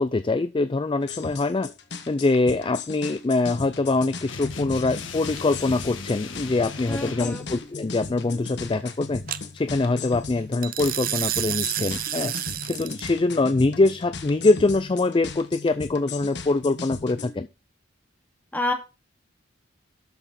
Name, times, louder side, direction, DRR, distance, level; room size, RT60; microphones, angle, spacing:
voice 1, 0.0-1.7 2.1-9.2 9.5-12.3 12.7-17.5, left 3 dB, 25° left, 13 dB, 0.4 m, -23 dB
sound 1, 1.0-17.3, left 4 dB, 60° left, 1.4 m, -37 dB
sound 2, 4.3-7.4, left 4 dB, 80° left, 1.5 m, -37 dB
sound 3, 5.4-5.8 9.3-9.4 10.6-13.1, right 13 dB, 50° right, 0.6 m, -29 dB
voice 2, 6.9-7.4 18.5-18.7, left 2 dB, 10° left, 2 dB, 2.3 m, -28 dB
12.5 x 6.0 x 4.2 m, 0.29 s
head